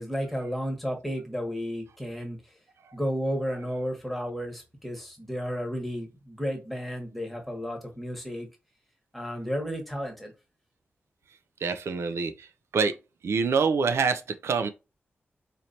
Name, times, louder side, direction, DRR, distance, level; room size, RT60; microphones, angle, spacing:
voice 1, 0.0-2.4 2.9-8.5 9.1-10.3, equal, ahead, 1.2 m, -32 dB
voice 2, 11.6-12.5 12.7-13.0 13.2-14.7, right 5 dB, 80° right, 0.5 m, -26 dB
4.3 x 3.2 x 2.7 m
wide cardioid pair, 170°, 4 cm